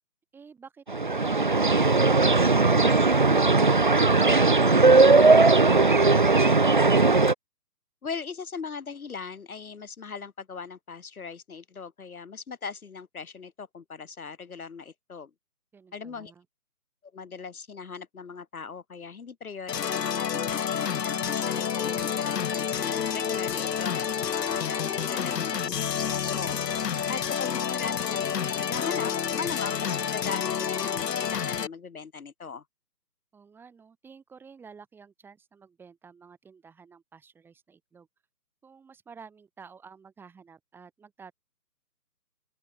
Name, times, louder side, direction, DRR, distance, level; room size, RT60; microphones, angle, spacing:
sound 1, 0.9-7.3, right 3 dB, 30° right, 0.7 m, -19 dB
voice 1, 8.0-15.3 15.9-16.3 17.1-32.6, left 5 dB, 60° left, 2.2 m, -39 dB
voice 2, 15.7-16.5 26.9-27.2 33.3-38.1 38.6-41.3, right 5 dB, 5° right, 6.3 m, -52 dB
sound 2, 19.7-31.7, left 8 dB, 80° left, 0.9 m, -29 dB
open air
hypercardioid pair, 165°, 48 cm